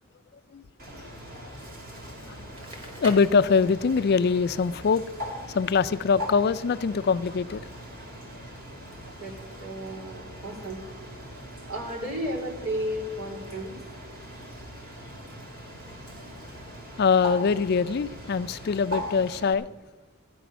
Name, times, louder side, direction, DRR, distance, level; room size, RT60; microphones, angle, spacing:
Bird, 0.8-19.5, equal, 45° right, 2.4 m, -40 dB
Crackle, 2.5-4.1, equal, 25° right, 1.8 m, -42 dB
voice 1, 3.0-5.0 5.5-7.6 17.0-19.7, left 5 dB, 50° left, 14 dB, 0.4 m, -23 dB
voice 2, 9.2-10.8 11.6-13.7, equal, 80° right, -1 dB, 3.8 m, -33 dB
14.0 x 10.0 x 6.1 m, 1.2 s
head